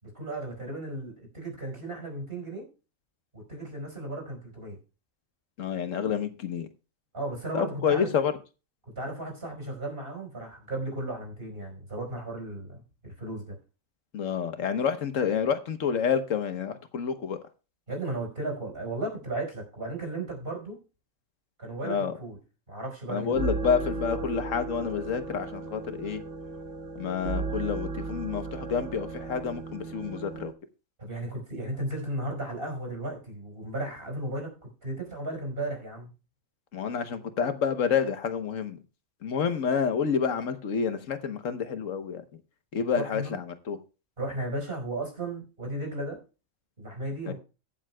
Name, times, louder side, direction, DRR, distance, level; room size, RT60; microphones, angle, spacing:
voice 1, 0.0-2.7 3.3-4.8 7.1-8.1 9.0-13.6 17.9-20.8 21.6-22.4 22.7-23.6 24.0-24.1 31.0-36.1 43.0-43.4 44.2-46.2 46.8-47.3, right 2 dB, 50° right, 5.3 m, -35 dB
voice 2, 5.6-6.7 7.5-8.3 14.1-17.4 21.8-22.2 23.1-26.2 26.9-30.5 36.7-38.8 39.2-42.2 42.7-43.8 47.3-47.4, left 7 dB, 75° left, 1.4 m, -29 dB
sound 1, 23.1-30.5, right 3 dB, 65° right, 1.5 m, -35 dB
22.5 x 7.6 x 2.2 m
omnidirectional pair, 1.3 m